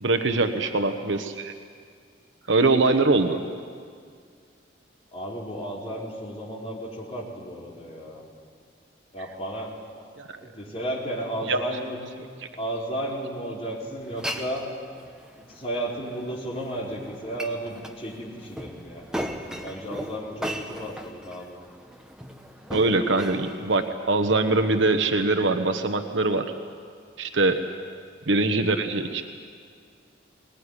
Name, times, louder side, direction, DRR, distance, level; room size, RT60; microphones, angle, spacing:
voice 1, 0.0-1.5 2.5-3.4 10.2-10.3 11.5-11.6 22.7-26.4 27.2-27.6 28.3-29.2, right 3 dB, 80° right, 7 dB, 1.1 m, -22 dB
voice 2, 5.1-8.2 9.1-9.7 10.4-12.0 12.6-14.7 15.4-19.1 19.6-21.6 27.8-27.9, right 1 dB, 30° left, -4 dB, 4.5 m, -33 dB
Glass, 14.0-23.9, equal, 5° right, 1.2 m, -38 dB
21.0 x 20.0 x 9.9 m, 2.1 s
head